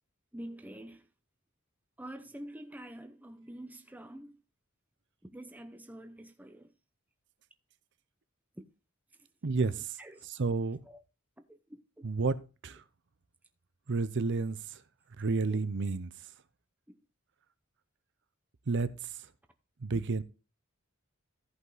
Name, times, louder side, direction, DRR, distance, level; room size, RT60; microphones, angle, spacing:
voice 1, 0.3-1.0 2.0-4.3 5.2-6.7 8.6-8.7 10.0-10.2 10.9-11.0 11.5-12.1 15.5-15.7 16.9-17.0 19.9-20.0, right 1 dB, 5° right, 0.7 m, -47 dB
voice 2, 9.4-10.0 10.2-10.8 12.0-12.4 12.6-12.8 13.9-14.8 15.2-16.1 18.7-18.9 19.8-20.2, right 4 dB, 55° right, 0.7 m, -30 dB
14.0 x 5.4 x 4.0 m
head